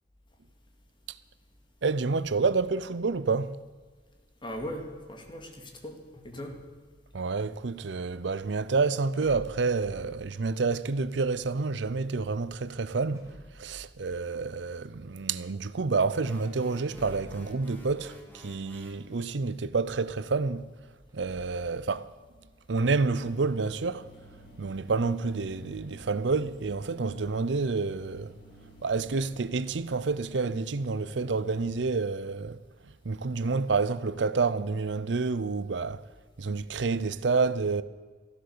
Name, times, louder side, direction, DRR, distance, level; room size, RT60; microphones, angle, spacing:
voice 1, 1.8-3.6 7.1-13.3 13.5-20.7 21.1-22.1 22.7-24.1 24.6-28.3 28.8-32.6 33.0-36.1 36.4-37.8, right 4 dB, 75° right, 0.6 m, -29 dB
voice 2, 4.4-6.6, equal, 25° left, 2.3 m, -39 dB
sound 1, 4.5-7.7 8.6-8.7 9.1-12.5 13.1-15.0 16.9-18.7 19.0-19.1 19.7-19.8 20.8-21.4, equal, 15° right, 3.3 m, -52 dB
sound 2, 16.2-19.1, equal, 10° left, 2.5 m, -51 dB
sound 3, 22.7-31.7, equal, 80° left, 5.1 m, -52 dB
15.0 x 11.5 x 6.8 m
head